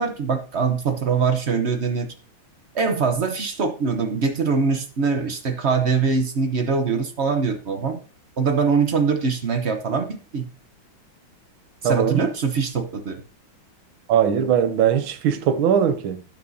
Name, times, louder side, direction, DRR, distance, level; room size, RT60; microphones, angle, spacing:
voice 1, 0.0-2.1 2.7-8.0 8.4-10.5 11.8-13.2, right 5 dB, 45° right, 0.9 m, -23 dB
voice 2, 11.8-12.3 14.1-16.2, right 8 dB, 85° right, 1.6 m, -20 dB
16.0 x 6.1 x 2.7 m
omnidirectional pair, 2.2 m